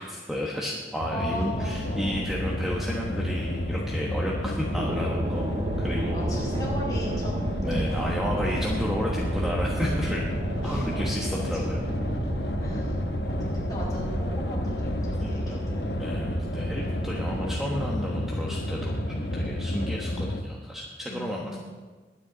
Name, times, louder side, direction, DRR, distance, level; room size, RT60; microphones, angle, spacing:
voice 1, 0.0-5.4 5.8-6.3 7.6-10.3 10.6-11.8 15.2-15.6 16.0-21.6, equal, ahead, -3 dB, 1.2 m, -32 dB
sound 1, 1.0-20.4, left 1 dB, 65° left, 1.1 m, -30 dB
voice 2, 1.1-2.8 4.4-4.7 6.1-7.5 8.2-8.7 10.6-11.1 11.3-11.6 12.6-16.0 21.1-21.6, equal, 20° left, -5 dB, 4.9 m, -38 dB
sound 2, 1.5-17.9, right 2 dB, 30° right, 0.4 m, -34 dB
21.0 x 9.6 x 4.0 m, 1.4 s
head